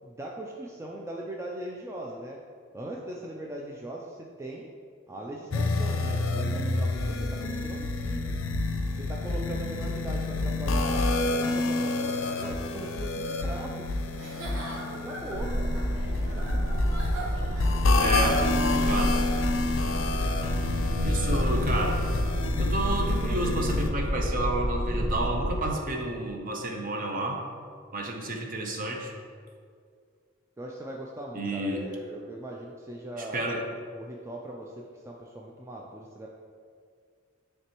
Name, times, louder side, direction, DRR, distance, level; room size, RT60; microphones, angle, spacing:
voice 1, 0.0-2.4 2.7-4.7 5.1-8.3 8.9-11.1 11.4-13.8 15.0-15.7 16.3-16.5 30.6-36.3, right 1 dB, 15° right, -2 dB, 0.3 m, -40 dB
sound 1, 5.5-23.9, left 2 dB, 70° left, 0.5 m, -28 dB
Giggle / Chuckle chortle, 14.1-19.6, right 1 dB, 70° right, 1.2 m, -41 dB
sound 2, 15.3-25.6, equal, 90° right, 0.9 m, -29 dB
voice 2, 18.0-18.4 18.7-19.1 21.0-22.0 22.6-27.4 27.9-29.1 31.3-31.8 33.2-33.6, right 1 dB, 45° right, 1 dB, 0.7 m, -30 dB
9.8 x 3.3 x 2.9 m, 2.2 s
head